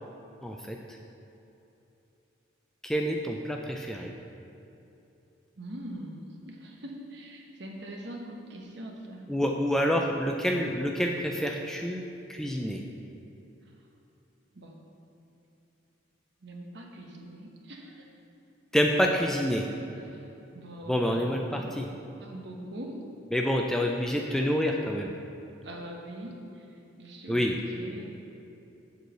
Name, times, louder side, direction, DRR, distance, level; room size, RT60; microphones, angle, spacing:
voice 1, 0.4-0.8 2.8-4.1 9.3-12.0 12.3-12.8 18.7-19.7 20.9-21.9 23.3-25.1 27.3-27.6, equal, ahead, 1 dB, 0.3 m, -27 dB
voice 2, 5.6-9.3 9.9-10.2 14.5-14.8 16.4-18.0 20.0-20.2 20.5-21.7 22.2-23.0 25.6-26.7 27.0-28.1, right 1 dB, 60° right, 1 dB, 1.0 m, -43 dB
6.7 x 4.7 x 6.6 m, 2.9 s
head